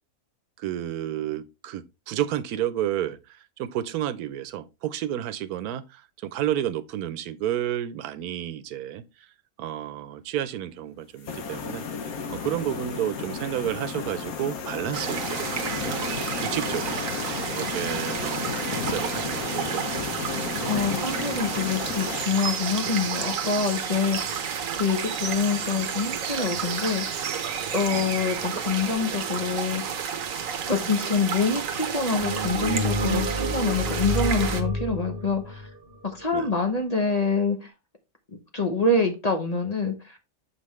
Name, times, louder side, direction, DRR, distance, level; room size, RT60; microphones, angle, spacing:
voice 1, 0.6-3.2 3.6-9.0 9.6-11.8 12.3-15.4 15.8-17.0 17.5-20.0 24.7-24.8 27.9-28.2 30.6-30.7 36.3-36.5, right 11 dB, 90° right, 1.1 m, -31 dB
sound 1, 11.2-22.3, left 5 dB, 75° left, 1.3 m, -33 dB
sound 2, 14.9-34.6, right 7 dB, 65° right, 1.2 m, -31 dB
voice 2, 20.7-27.3 27.7-29.8 30.7-35.7 36.0-37.7 38.5-40.2, left 4 dB, 30° left, 0.9 m, -26 dB
sound 3, 32.2-36.6, right 1 dB, 40° right, 1.7 m, -29 dB
6.5 x 5.6 x 3.1 m
omnidirectional pair, 1.6 m